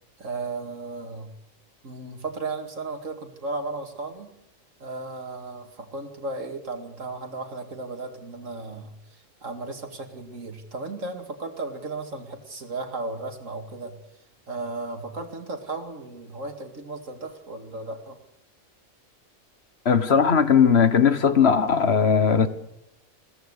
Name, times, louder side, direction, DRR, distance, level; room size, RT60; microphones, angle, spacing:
voice 1, 0.2-1.3 1.8-4.3 4.8-14.0 14.5-18.2, right 3 dB, 65° right, 2.6 m, -35 dB
voice 2, 19.8-22.5, left 6 dB, 50° left, 1.5 m, -18 dB
22.0 x 16.5 x 8.2 m
omnidirectional pair, 1.4 m